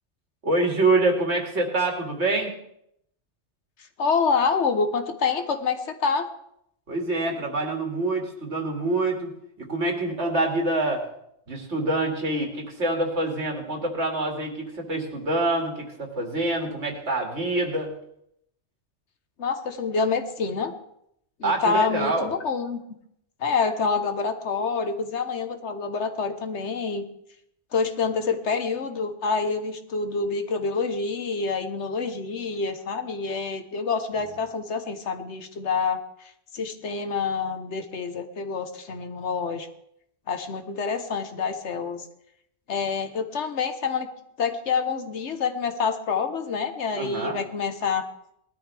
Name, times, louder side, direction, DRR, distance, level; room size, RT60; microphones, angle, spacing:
voice 1, 0.4-2.5 6.9-9.3 9.6-11.0 11.5-17.9 21.4-22.3 46.9-47.4, right 2 dB, 70° right, 1 dB, 2.6 m, -26 dB
voice 2, 4.0-6.3 19.4-20.7 21.4-22.8 23.4-27.1 27.7-36.0 36.5-39.7 40.3-42.1 42.7-44.1 44.4-48.0, left 5 dB, 70° left, 8 dB, 1.4 m, -27 dB
19.5 x 13.0 x 3.4 m, 0.76 s
omnidirectional pair, 1.2 m